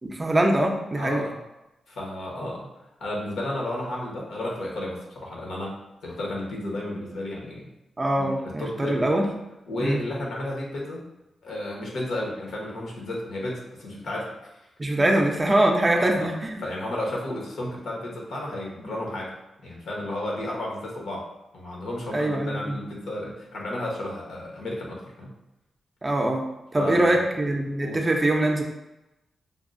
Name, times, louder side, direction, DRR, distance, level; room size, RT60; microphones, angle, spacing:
voice 1, 0.0-1.2 8.0-9.3 9.8-10.0 14.8-16.6 22.1-22.8 26.0-26.4 26.7-28.6, right 1 dB, 25° right, 2 dB, 0.5 m, -23 dB
voice 2, 1.0-1.4 1.9-2.7 3.0-5.8 6.0-7.7 8.2-9.1 9.7-11.1 11.4-14.6 14.9-15.1 16.0-16.3 16.6-19.3 19.6-21.3 21.5-25.3 26.7-27.3 27.8-28.0, left 1 dB, 85° left, -2 dB, 0.9 m, -32 dB
5.1 x 2.0 x 2.5 m, 0.94 s
wide cardioid pair, 120°, 0 cm